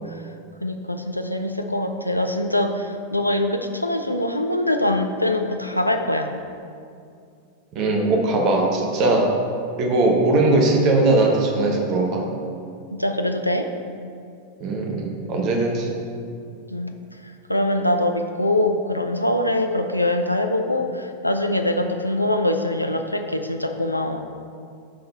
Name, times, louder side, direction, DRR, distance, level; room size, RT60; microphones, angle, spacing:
voice 1, 0.6-6.4 13.0-13.7 16.7-16.9 17.2-24.2, left 1 dB, 90° left, 5 dB, 0.4 m, -23 dB
voice 2, 7.7-9.3 9.8-12.3 14.6-15.9, right 2 dB, 40° right, 1 dB, 1.0 m, -20 dB
6.8 x 3.8 x 5.4 m, 2.4 s
figure-of-eight pair, 90°, 0 cm